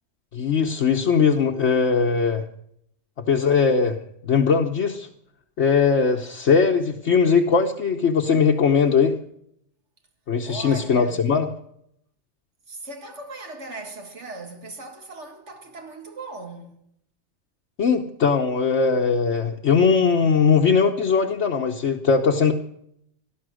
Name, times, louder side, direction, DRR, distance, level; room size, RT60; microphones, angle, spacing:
voice 1, 0.3-2.4 3.3-4.0 4.2-5.1 5.6-9.1 10.3-11.5 17.8-22.5, left 5 dB, 65° left, 1.3 m, -20 dB
voice 2, 10.4-11.3 12.7-16.8, right 3 dB, 65° right, 2.2 m, -38 dB
17.5 x 12.5 x 6.3 m
omnidirectional pair, 1.3 m